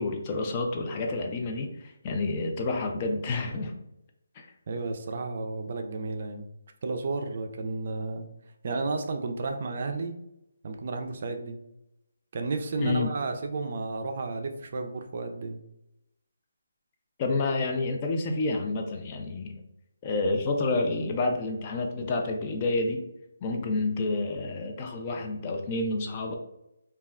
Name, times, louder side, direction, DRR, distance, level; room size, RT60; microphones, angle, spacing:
voice 1, 0.0-3.7 12.8-13.1 17.2-19.6 20.0-23.1 23.4-26.3, left 2 dB, 25° left, 3 dB, 0.3 m, -29 dB
voice 2, 4.7-6.5 6.8-8.3 8.6-10.2 10.6-11.6 12.3-15.6, right 3 dB, 50° right, 5 dB, 0.4 m, -32 dB
2.3 x 2.2 x 3.4 m, 0.84 s
figure-of-eight pair, 160°, 0 cm